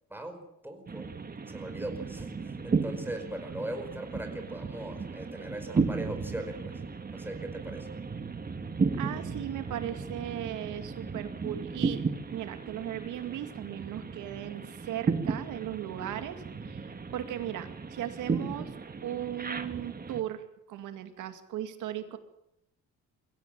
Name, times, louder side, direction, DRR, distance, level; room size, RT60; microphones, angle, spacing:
voice 1, 0.1-1.1 1.5-6.8 7.1-7.9, right 1 dB, 5° right, 5 dB, 4.9 m, -40 dB
sound 1, 0.9-20.2, right 4 dB, 30° right, 2.1 m, -35 dB
voice 2, 9.0-12.0 12.3-18.8 19.0-22.2, right 11 dB, 90° right, 9 dB, 2.3 m, -37 dB
23.0 x 16.5 x 9.0 m, 0.83 s
cardioid pair, 90°, 30 cm